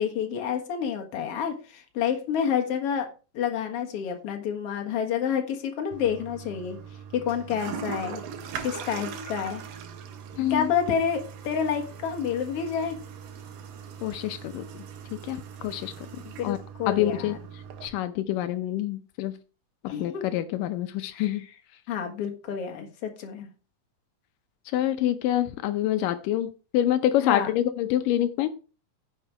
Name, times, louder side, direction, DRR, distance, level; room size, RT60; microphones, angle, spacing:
voice 1, 0.0-3.1 3.3-6.8 7.1-8.2 8.6-9.6 10.5-13.0 16.4-17.4 19.9-20.2 21.1-21.4 21.9-23.5 27.2-27.5, left 7 dB, 50° left, 3 dB, 2.3 m, -29 dB
Toilet flush, 5.9-17.9, right 7 dB, 85° right, 2.9 m, -41 dB
voice 2, 10.4-10.7 14.0-14.7 15.2-16.1 16.4-16.6 16.9-17.4 17.8-19.4 20.0-21.5 24.7-26.5 26.7-28.5, left 12 dB, 85° left, 10 dB, 2.3 m, -26 dB
9.9 x 6.8 x 4.6 m, 0.34 s
omnidirectional pair, 3.8 m